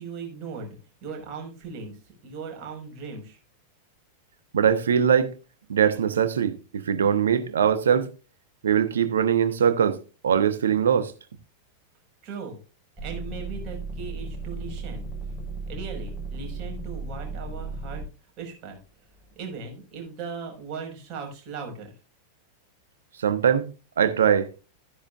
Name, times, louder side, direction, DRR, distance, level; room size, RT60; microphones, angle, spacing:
voice 1, 0.0-2.0 2.2-3.4 12.2-12.6 13.0-15.1 15.7-18.1 18.4-18.8 19.4-21.9, right 5 dB, 40° right, 5.3 m, -38 dB
voice 2, 4.5-5.3 5.7-8.1 8.6-11.1 23.2-23.7 24.0-24.5, right 8 dB, 65° right, 1.1 m, -22 dB
sound 1, 13.0-18.0 18.7-19.4, right 3 dB, 10° right, 5.9 m, -35 dB
13.0 x 10.0 x 2.5 m
figure-of-eight pair, 90°, 0 cm